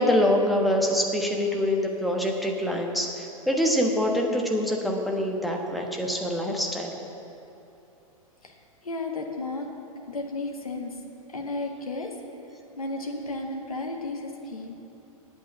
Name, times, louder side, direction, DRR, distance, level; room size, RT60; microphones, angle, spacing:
voice 1, 0.0-6.9, left 1 dB, ahead, 0 dB, 1.2 m, -25 dB
voice 2, 8.8-9.7 10.1-11.0 11.3-12.1 12.8-14.7, left 2 dB, 75° left, 2 dB, 1.4 m, -33 dB
8.5 x 8.4 x 8.8 m, 3.0 s
figure-of-eight pair, 100°, 19 cm